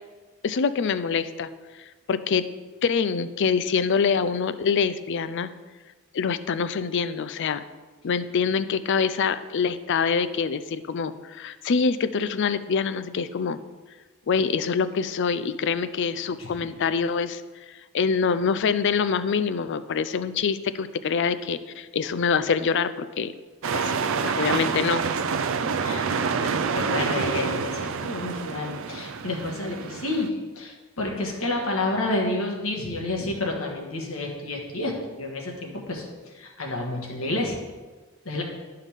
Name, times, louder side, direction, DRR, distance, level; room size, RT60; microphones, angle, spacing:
voice 1, 0.4-1.5 2.1-2.4 2.8-5.5 6.1-7.6 8.0-13.6 14.3-17.4 17.9-23.3 23.7-23.9 24.2-25.0, left 5 dB, 60° left, 13 dB, 0.4 m, -25 dB
sound 1, 23.6-30.3, right 5 dB, 65° right, 0.5 m, -27 dB
voice 2, 25.8-37.6 38.2-38.4, left 2 dB, 80° left, 0 dB, 1.6 m, -30 dB
11.5 x 5.6 x 3.6 m, 1.3 s
head